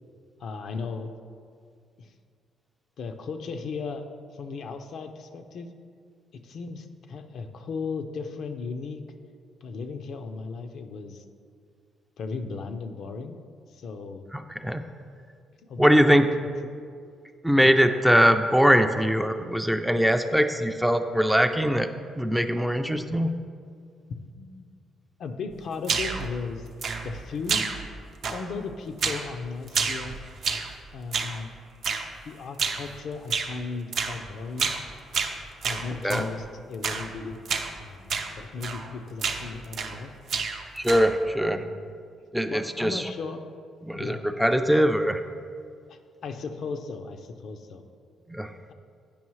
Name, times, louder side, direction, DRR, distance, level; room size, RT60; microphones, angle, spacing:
voice 1, 0.4-1.1 2.0-2.1 3.0-4.0 4.3-5.7 6.4-9.0 9.6-11.2 12.2-13.3 13.7-14.2 15.6-16.1 17.5-17.7 24.3-24.7 25.2-26.7 27.0-27.7 28.3-30.2 30.9-31.5 32.2-34.7 35.1-35.3 35.6-37.4 37.8-40.1 41.6-41.9 42.5-43.4 43.9-44.3 45.9-47.9, left 4 dB, 65° left, 6 dB, 0.5 m, -36 dB
voice 2, 14.3-14.8 15.8-16.3 17.4-21.9 22.2-23.4 36.0-36.3 40.7-41.6 42.3-43.1 43.8-45.2 48.3-48.5, equal, 5° right, 7 dB, 0.3 m, -22 dB
sound 1, 25.8-26.3 26.8-27.2 27.5-28.0 28.2-28.6 29.0-29.3 29.7-30.7 31.1-31.4 31.8-32.1 32.6-32.9 33.3-33.5 33.9-34.2 34.6-34.9 35.1-36.3 36.8-37.1 37.5-37.7 38.1-38.3 38.6-38.9 39.2-40.0 40.3-41.2, right 5 dB, 65° right, 0.6 m, -29 dB
8.5 x 5.4 x 3.1 m, 2.2 s
cardioid pair, 90°, 0 cm